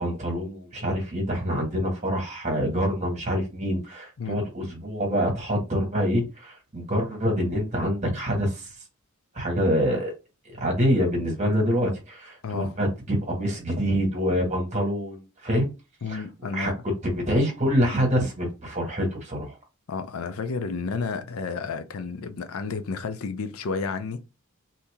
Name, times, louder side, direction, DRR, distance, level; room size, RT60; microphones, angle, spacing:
voice 1, 0.0-8.7 9.3-10.1 10.6-15.7 16.1-16.2 16.5-16.7 17.0-19.6, equal, 35° right, 1.5 m, -26 dB
voice 2, 12.4-12.7 16.0-16.8 19.9-24.3, left 4 dB, 90° left, 0.5 m, -31 dB
2.9 x 2.8 x 3.5 m
head